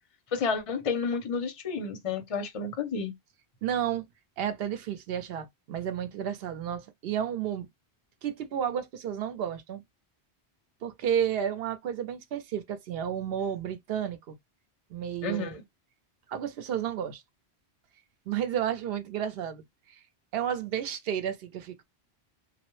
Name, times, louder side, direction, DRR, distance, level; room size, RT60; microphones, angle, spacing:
voice 1, 0.3-3.2 15.2-15.6, left 4 dB, 40° left, 0.6 m, -30 dB
voice 2, 3.6-4.0 4.4-7.7 8.2-9.8 10.8-14.4 14.9-15.6 16.3-17.2 18.3-19.6 19.9-20.0 20.3-21.8, right 9 dB, 70° right, 0.8 m, -32 dB
2.2 x 2.0 x 3.0 m
omnidirectional pair, 1.1 m